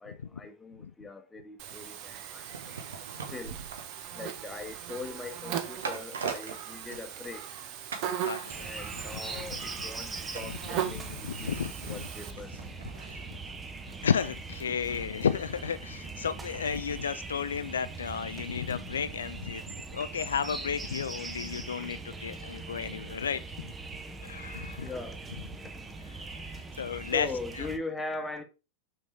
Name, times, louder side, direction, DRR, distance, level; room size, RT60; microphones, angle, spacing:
voice 1, 0.0-2.9 3.3-3.6 4.1-7.5 8.6-12.5 21.6-26.0 27.1-28.4, left 3 dB, 10° left, 1.2 m, -42 dB
Buzz, 1.6-12.3, right 10 dB, 40° right, 1.1 m, -39 dB
sound 1, 2.4-7.6 7.9-8.2 8.5-17.6 17.9-18.0, right 5 dB, 65° right, 1.2 m, -44 dB
voice 2, 8.2-8.7 10.4-10.6 10.8-12.1 13.0-13.2 14.0-23.7 24.2-24.9 26.2-27.3 27.6-27.7, left 7 dB, 70° left, 0.3 m, -33 dB
sound 2, 8.5-27.8, right 3 dB, 15° right, 0.9 m, -41 dB
6.3 x 5.5 x 3.4 m
figure-of-eight pair, 90°, 0 cm